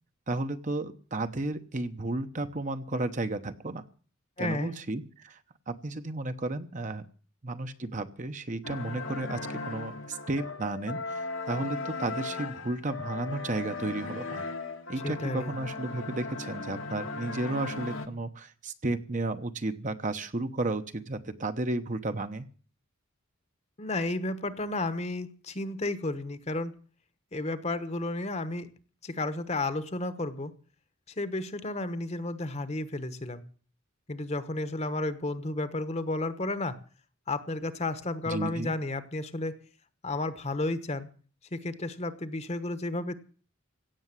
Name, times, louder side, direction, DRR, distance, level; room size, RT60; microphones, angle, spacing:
voice 1, 0.3-3.8 4.4-5.4 5.7-7.1 7.4-14.5 14.9-22.5 38.3-38.7, right 2 dB, 40° right, 9 dB, 0.9 m, -33 dB
voice 2, 4.4-4.7 15.0-15.5 23.8-26.7 27.3-28.7 29.0-30.5 31.2-33.4 34.1-36.8 37.3-39.6 40.0-41.1 41.5-43.1, left 2 dB, 30° left, 12 dB, 1.1 m, -32 dB
sound 1, 8.6-18.1, left 3 dB, 75° left, 1.6 m, -37 dB
16.5 x 7.0 x 9.8 m, 0.42 s
head